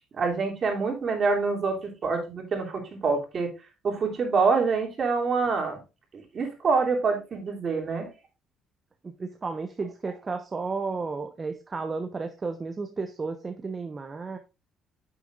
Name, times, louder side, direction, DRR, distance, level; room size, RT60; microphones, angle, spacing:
voice 1, 0.2-3.5 3.8-5.8 6.1-8.1, right 4 dB, 45° right, 1 dB, 3.0 m, -26 dB
voice 2, 9.0-14.4, right 4 dB, 30° right, 6 dB, 1.0 m, -33 dB
9.5 x 7.0 x 2.5 m, 0.29 s
supercardioid pair, 80°, 0 cm